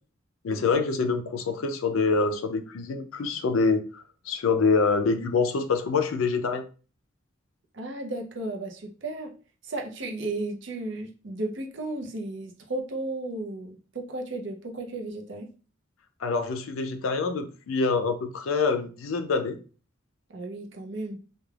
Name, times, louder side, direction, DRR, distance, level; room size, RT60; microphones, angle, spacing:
voice 1, 0.4-6.6 16.2-19.6, left 4 dB, 85° left, 0.4 m, -26 dB
voice 2, 7.7-9.3 9.6-15.5 20.3-21.2, right 2 dB, 65° right, 0.6 m, -34 dB
3.2 x 2.2 x 2.3 m
head